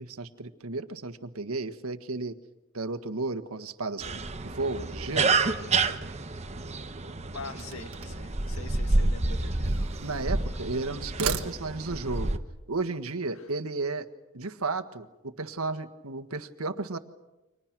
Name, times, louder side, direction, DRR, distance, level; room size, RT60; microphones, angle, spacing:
voice 1, 0.0-2.3 2.7-5.4 10.0-12.4 12.7-14.1 14.3-17.0, right 3 dB, 90° right, 9 dB, 1.5 m, -33 dB
sound 1, 4.0-12.4, right 3 dB, 30° right, 1.1 m, -29 dB
voice 2, 7.3-9.7 13.3-13.5, left 4 dB, 70° left, 7 dB, 1.9 m, -43 dB
sound 2, 7.6-8.3 9.2-10.3 11.0-12.0, right 5 dB, 70° right, 1.6 m, -36 dB
30.0 x 25.5 x 6.1 m, 0.98 s
head